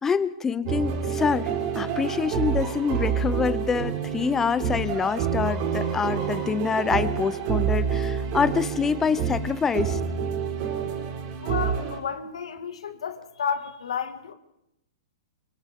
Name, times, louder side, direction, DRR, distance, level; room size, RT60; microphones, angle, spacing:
voice 1, 0.0-10.0, left 6 dB, 10° left, 0.8 m, -26 dB
sound 1, 0.7-12.0, right 7 dB, 40° right, 4.8 m, -28 dB
voice 2, 11.4-14.3, left 7 dB, 85° left, 2.1 m, -31 dB
27.5 x 25.0 x 3.8 m
hypercardioid pair, 150°, 3 cm